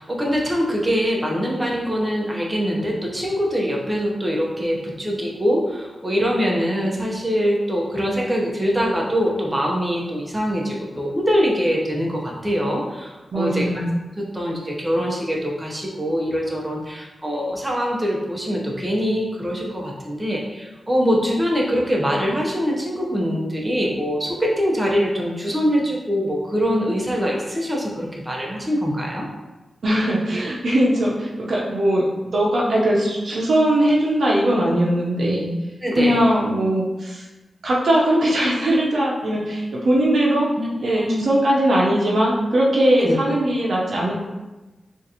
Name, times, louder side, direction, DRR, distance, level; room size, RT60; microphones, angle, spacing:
voice 1, 0.0-13.7 14.2-29.3 35.8-36.2 40.6-41.2 43.0-43.4, equal, 15° right, -2 dB, 0.8 m, -23 dB
voice 2, 13.3-14.0 29.8-32.0 32.3-35.5 36.0-37.2 37.6-40.5 40.8-44.1, right 1 dB, 75° right, -4 dB, 0.7 m, -20 dB
3.7 x 2.5 x 2.8 m, 1.1 s
cardioid pair, 50°, 0 cm